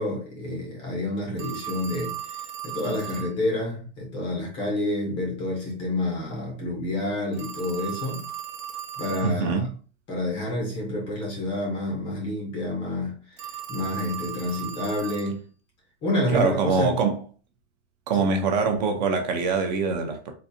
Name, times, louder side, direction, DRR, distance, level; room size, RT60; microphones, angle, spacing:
voice 1, 0.0-8.3 9.0-9.6 10.1-15.5 16.0-17.0 18.2-18.3, left 1 dB, 15° left, 0.4 m, -29 dB
Telephone, 1.4-3.4 7.3-9.4 13.4-15.4, right 10 dB, 80° right, 0.7 m, -36 dB
voice 2, 9.2-9.7 16.3-17.2 18.1-20.3, right 4 dB, 40° right, 0.5 m, -24 dB
3.9 x 2.5 x 2.6 m
supercardioid pair, 170°, 37 cm